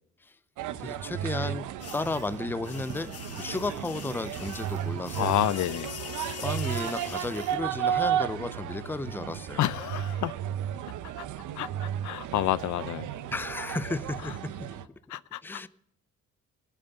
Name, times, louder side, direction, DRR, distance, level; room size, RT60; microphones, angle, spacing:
sound 1, 0.6-14.9, right 10 dB, 80° right, 0.8 m, -34 dB
voice 1, 0.8-1.7 1.9-5.3 6.4-9.6 13.3-14.7 15.4-15.7, left 3 dB, 5° left, 15 dB, 0.5 m, -34 dB
sound 2, 1.8-7.6, left 8 dB, 55° left, 1.4 m, -43 dB
voice 2, 5.2-5.9 9.6-10.3 11.2-11.3 11.6-13.1 15.1-15.6, left 13 dB, 70° left, 18 dB, 0.6 m, -29 dB
17.5 x 8.1 x 5.6 m, 0.75 s
cardioid pair, 90°, 30 cm